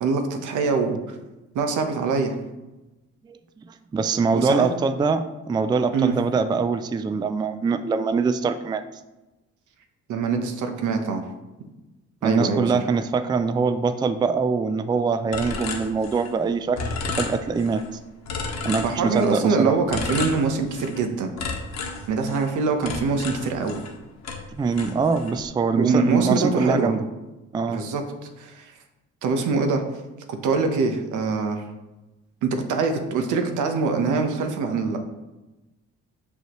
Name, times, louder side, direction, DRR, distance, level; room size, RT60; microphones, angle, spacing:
voice 1, 0.0-1.2 1.5-2.4 4.3-4.7 5.9-6.2 10.1-11.2 12.2-12.8 18.8-21.3 22.1-23.8 25.8-26.9 27.7-28.6 29.2-29.8 30.3-31.6 32.4-35.0, right 4 dB, 80° right, 5 dB, 0.9 m, -24 dB
voice 2, 3.7-8.8 12.2-17.8 18.6-19.7 24.6-27.0 27.5-27.8, right 4 dB, 15° right, 11 dB, 0.3 m, -23 dB
sound 1, 15.3-16.5 16.8-17.9 18.3-19.4 19.9-21.0 21.4-24.0 24.2-25.4, left 4 dB, 60° left, 1.2 m, -32 dB
6.5 x 5.4 x 3.0 m, 1.1 s
cardioid pair, 90°, 30 cm